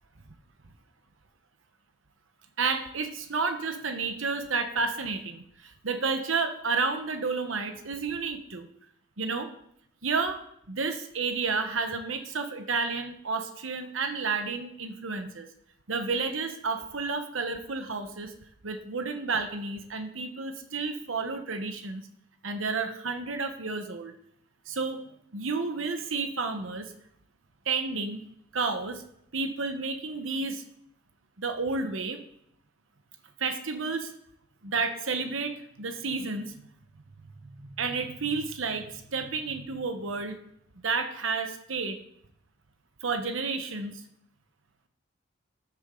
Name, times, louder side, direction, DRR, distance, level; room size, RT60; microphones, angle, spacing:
voice 1, 2.6-8.7 9.2-9.5 10.0-10.4 10.7-15.5 15.9-18.3 18.6-22.0 22.4-24.1 24.7-25.0 25.3-26.9 27.6-28.2 28.5-29.0 29.3-30.6 31.4-32.2 33.4-34.1 34.6-36.6 37.4-40.4 40.8-42.0 43.0-44.0, right 4 dB, 85° right, 7 dB, 1.1 m, -31 dB
13.0 x 7.3 x 3.8 m, 0.73 s
head